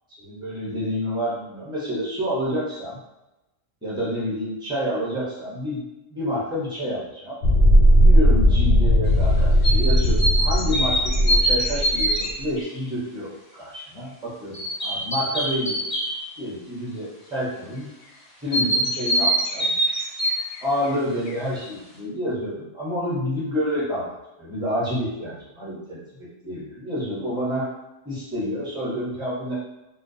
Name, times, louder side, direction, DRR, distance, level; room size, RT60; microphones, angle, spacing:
voice 1, 0.2-3.0 3.8-5.8 6.1-7.4 8.0-15.8 16.4-17.9 18.4-19.7 20.6-27.7 28.0-29.5, equal, 5° right, -8 dB, 0.6 m, -28 dB
sound 1, 7.4-12.2, equal, 75° left, 1.0 m, -17 dB
sound 2, 9.6-12.8 14.5-16.2 18.5-20.9 21.3-21.4, right 1 dB, 50° left, 0.6 m, -24 dB
2.3 x 2.2 x 2.6 m, 0.97 s
omnidirectional pair, 1.3 m